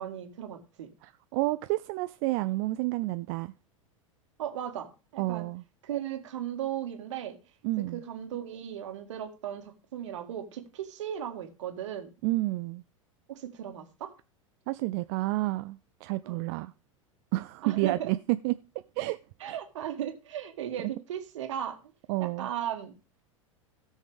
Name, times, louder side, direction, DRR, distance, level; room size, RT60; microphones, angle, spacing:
voice 1, 0.0-0.9 4.4-5.5 5.8-7.4 7.8-12.1 13.3-14.1 16.2-16.4 17.6-18.1 19.4-21.8 22.2-23.0, right 10 dB, 65° right, 1.8 m, -36 dB
voice 2, 1.0-3.5 5.2-5.6 7.6-8.0 12.2-12.8 14.7-16.7 17.3-18.5 19.0-19.2 19.5-19.6 20.8-20.9 22.1-22.5, right 19 dB, 45° right, 0.4 m, -30 dB
17.0 x 6.3 x 3.5 m
figure-of-eight pair, 85°, 17 cm